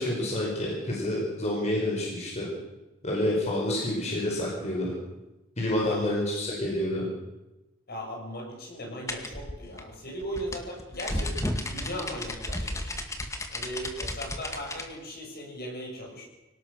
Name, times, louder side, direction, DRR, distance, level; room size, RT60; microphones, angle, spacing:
voice 1, 0.0-2.5 3.0-4.9 5.6-7.1, left 1 dB, 35° left, -3 dB, 5.4 m, -28 dB
voice 2, 7.9-13.0 13.5-16.2, equal, 50° left, 0 dB, 6.7 m, -38 dB
sound 1, 9.1-14.9, left 1 dB, 15° left, 2.1 m, -33 dB
24.0 x 18.5 x 6.7 m, 1.0 s
head